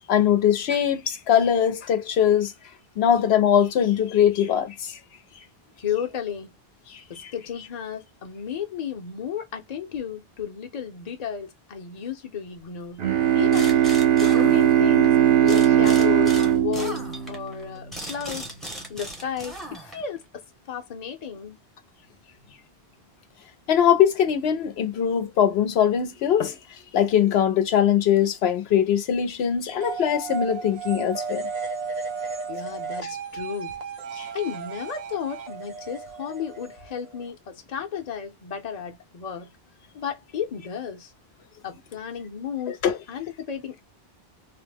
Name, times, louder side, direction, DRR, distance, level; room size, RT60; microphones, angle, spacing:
voice 1, 0.1-2.5 3.0-5.0 23.7-26.6 26.9-31.5 34.2-34.3 42.8-43.0, left 9 dB, 85° left, 0.9 m, -21 dB
voice 2, 5.8-6.5 7.1-13.0 13.3-13.8 14.2-15.2 15.4-17.0 17.3-18.5 18.9-19.5 19.8-20.2 20.7-21.6 32.5-33.7 34.3-39.5 39.9-41.1 41.6-42.8 43.1-43.9, left 8 dB, 45° left, 0.7 m, -33 dB
Bowed string instrument, 13.0-17.9, right 11 dB, 75° right, 0.9 m, -19 dB
sound 1, 13.5-15.1 15.5-20.2, right 1 dB, ahead, 0.6 m, -37 dB
sound 2, 29.8-37.3, right 5 dB, 50° right, 0.6 m, -34 dB
2.8 x 2.0 x 3.3 m
omnidirectional pair, 1.0 m